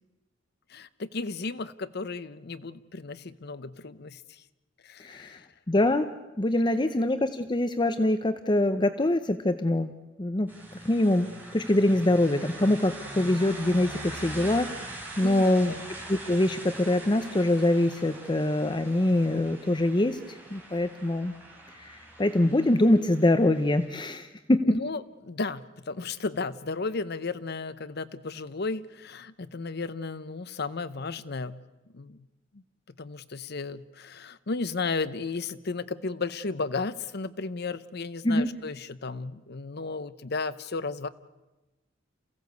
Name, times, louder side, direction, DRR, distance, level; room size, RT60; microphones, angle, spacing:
voice 1, 0.7-4.4 4.8-5.5 15.2-15.9 24.6-31.6 31.9-32.2 33.0-41.1, left 4 dB, 55° left, 14 dB, 0.8 m, -34 dB
voice 2, 5.0-5.4 5.7-6.1 6.4-9.9 10.2-10.5 10.8-11.3 11.5-14.7 15.2-15.7 16.1-20.2 20.5-21.3 21.8-24.8 38.2-38.5, left 1 dB, 25° left, 10 dB, 0.7 m, -24 dB
sound 1, 10.5-23.9, right 1 dB, 10° right, 5.4 m, -43 dB
28.0 x 16.0 x 8.1 m, 1.1 s
head